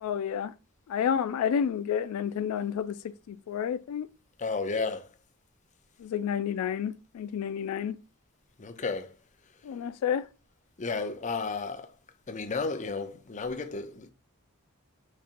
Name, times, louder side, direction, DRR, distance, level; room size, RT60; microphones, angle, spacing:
voice 1, 0.0-0.5 0.9-3.0 3.3-4.1 6.0-8.0 9.6-10.3, left 8 dB, 80° left, 0.3 m, -30 dB
voice 2, 4.4-5.1 8.6-9.1 10.8-11.9 12.3-14.1, left 4 dB, 35° left, 0.6 m, -32 dB
5.0 x 4.2 x 2.5 m
head